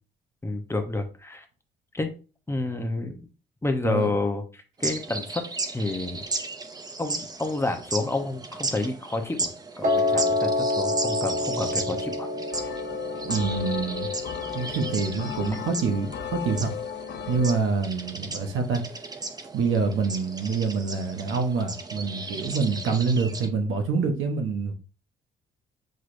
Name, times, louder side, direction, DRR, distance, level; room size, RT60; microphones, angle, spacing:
voice 1, 0.4-1.4 1.9-2.1 2.5-3.3 3.6-5.4 5.7-6.2 7.0-9.5 9.8-12.3, left 2 dB, 10° left, 0.8 m, -29 dB
sound 1, 4.8-23.5, right 3 dB, 20° right, 0.6 m, -35 dB
Piano, 9.8-16.0, left 2 dB, 45° right, 1.1 m, -28 dB
sound 2, 12.5-17.6, left 9 dB, 60° left, 0.5 m, -35 dB
voice 2, 13.2-14.1 14.5-16.7 17.3-18.9 19.5-24.7, right 4 dB, 80° right, 0.9 m, -26 dB
6.4 x 3.0 x 2.6 m
cardioid pair, 90°, 20 cm